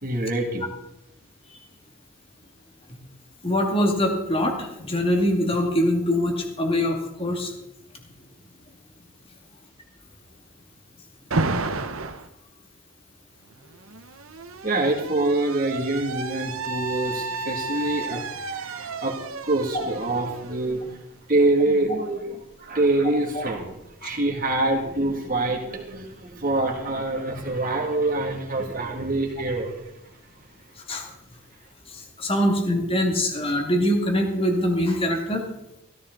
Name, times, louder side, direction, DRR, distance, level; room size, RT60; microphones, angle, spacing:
voice 1, 0.0-0.7 14.6-19.2 19.4-20.8 21.3-23.8 24.0-29.8, right 2 dB, 40° right, 2 dB, 2.5 m, -25 dB
voice 2, 3.4-7.5 18.1-18.2 23.3-23.4 24.0-24.1 30.9-31.1 31.9-35.4, left 1 dB, 25° left, 2 dB, 2.3 m, -23 dB
Alarm, 11.3-12.3 13.5-21.2, right 3 dB, 75° right, 1.0 m, -32 dB
16.5 x 14.5 x 4.0 m, 0.86 s
head